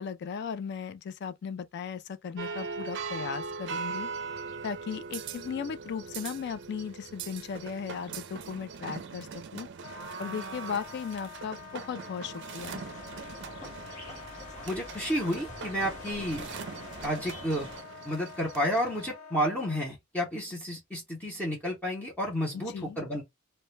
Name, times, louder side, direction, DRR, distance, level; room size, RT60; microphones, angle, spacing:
voice 1, 0.0-4.1 4.6-9.7 10.2-12.8 22.5-23.0, left 6 dB, 55° left, 0.3 m, -37 dB
sound 1, 2.4-19.0, right 5 dB, 55° right, 0.4 m, -41 dB
Wind instrument woodwind instrument, 9.8-19.9, left 6 dB, 70° left, 1.0 m, -47 dB
sound 2, 12.6-17.8, left 1 dB, 35° left, 1.0 m, -46 dB
voice 2, 14.7-16.5 17.0-17.7 18.0-23.2, equal, 10° left, 0.7 m, -31 dB
2.1 x 2.1 x 3.1 m
head